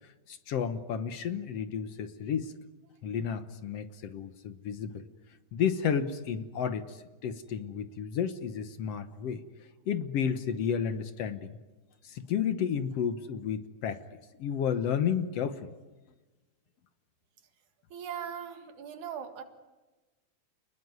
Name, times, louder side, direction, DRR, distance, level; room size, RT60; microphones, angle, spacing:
voice 1, 0.3-2.5 3.0-5.1 5.5-9.4 9.9-11.6 12.0-14.0 14.4-15.7, left 7 dB, 65° left, 10 dB, 2.0 m, -32 dB
voice 2, 17.9-19.4, right 8 dB, 80° right, 7 dB, 3.2 m, -39 dB
29.5 x 20.5 x 9.5 m, 1.2 s
omnidirectional pair, 3.4 m